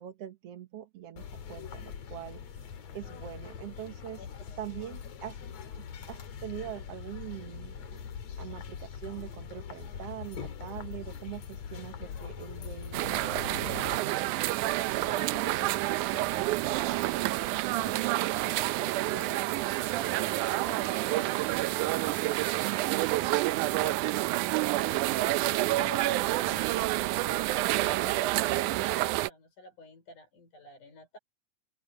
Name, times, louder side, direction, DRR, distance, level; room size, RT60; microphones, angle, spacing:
voice 1, 0.0-4.2 4.6-5.5 5.8-13.8 22.6-23.2 24.1-24.3, right 12 dB, 60° right, 2.0 m, -43 dB
sound 1, 1.2-14.0, left 7 dB, 60° left, 2.8 m, -42 dB
voice 2, 4.2-4.7 15.0-17.5 17.8-21.5 23.8-31.2, left 4 dB, 80° left, 7.0 m, -50 dB
sound 2, 12.9-29.3, right 17 dB, 85° right, 2.1 m, -28 dB
omnidirectional pair, 3.5 m